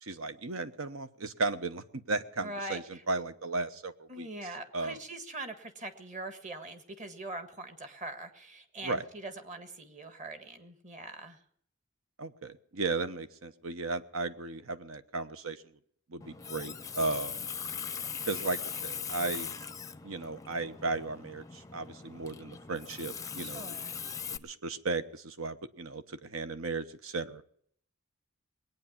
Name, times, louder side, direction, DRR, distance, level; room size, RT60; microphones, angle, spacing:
voice 1, 0.0-4.3 4.7-5.0 8.8-9.0 12.2-15.6 16.1-17.5 18.3-19.5 20.0-23.8 24.3-27.4, right 3 dB, 85° right, 11 dB, 1.0 m, -35 dB
voice 2, 2.4-3.0 4.1-11.4 23.4-24.0, right 2 dB, 35° right, 8 dB, 1.6 m, -42 dB
Water tap faucet, 16.2-24.4, left 6 dB, 15° left, 0.5 m, -40 dB
20.5 x 9.3 x 7.3 m, 0.65 s
head